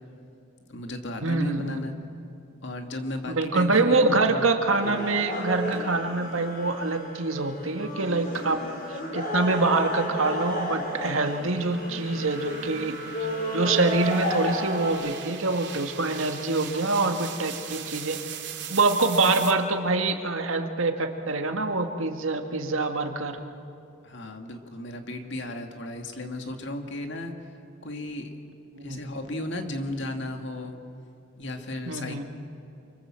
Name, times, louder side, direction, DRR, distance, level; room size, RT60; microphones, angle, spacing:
voice 1, 0.7-1.9 2.6-4.5 4.8-5.1 24.0-27.3 27.8-28.3 28.8-30.8 31.4-32.2, left 1 dB, 60° left, 4 dB, 2.3 m, -35 dB
voice 2, 1.2-1.8 3.3-8.6 8.9-13.3 13.5-18.2 18.7-23.4 28.8-29.0 31.9-32.2, right 3 dB, 85° right, 5 dB, 1.9 m, -25 dB
sound 1, 4.7-14.9, equal, 45° left, 5.2 m, -33 dB
sound 2, 7.4-19.5, right 9 dB, 60° right, 3.0 m, -42 dB
28.0 x 25.0 x 7.6 m, 2.7 s
head